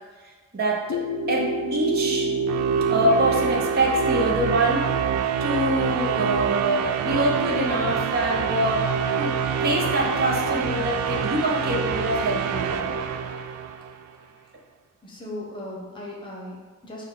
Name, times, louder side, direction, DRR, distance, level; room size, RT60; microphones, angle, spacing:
voice 1, 0.5-1.0 1.3-2.3 2.9-4.8 5.4-8.9 9.2-9.3 9.6-12.9, right 1 dB, 45° right, -2 dB, 0.6 m, -24 dB
sound 1, 0.9-6.5, left 7 dB, 60° left, 0.3 m, -34 dB
sound 2, 0.9-14.0, right 7 dB, 90° right, 0.3 m, -26 dB
voice 2, 15.0-17.0, left 1 dB, 20° left, -3 dB, 0.8 m, -37 dB
6.0 x 2.2 x 3.7 m, 1.4 s
head